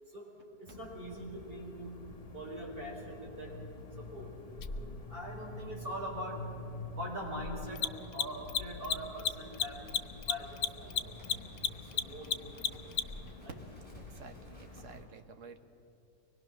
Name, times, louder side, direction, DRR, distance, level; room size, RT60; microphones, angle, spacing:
voice 1, 0.6-2.0 2.3-3.5 4.0-4.3 4.8-6.5 6.9-9.8 10.3-11.1 11.9-12.7 13.4-13.6, equal, 35° right, -3 dB, 5.1 m, -43 dB
sound 1, 0.7-15.1, left 2 dB, 25° left, 1.0 m, -47 dB
Mechanisms, 4.6-4.7 7.7-13.3, left 9 dB, 85° left, 1.3 m, -32 dB
Livestock farm animals working animals, 8.5-15.0, equal, 5° left, 5.7 m, -59 dB
voice 2, 13.9-15.6, right 5 dB, 50° right, 6 dB, 1.3 m, -52 dB
24.0 x 20.0 x 6.1 m, 2.7 s
omnidirectional pair, 1.8 m